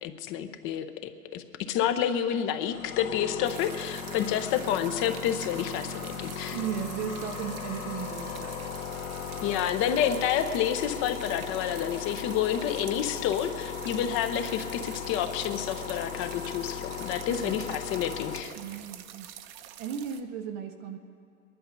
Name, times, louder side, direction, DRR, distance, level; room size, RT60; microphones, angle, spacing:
voice 1, 0.0-6.6 9.4-18.5, left 9 dB, 30° left, 9 dB, 0.8 m, -29 dB
sound 1, 2.7-18.4, left 7 dB, 65° left, 2.1 m, -37 dB
sound 2, 3.4-20.2, right 11 dB, 45° right, 0.9 m, -46 dB
voice 2, 6.5-8.7 17.3-17.6 18.6-19.3 19.8-21.0, right 8 dB, 25° right, 6 dB, 0.5 m, -36 dB
20.0 x 11.0 x 5.2 m, 2.4 s
hypercardioid pair, 120°, 43 cm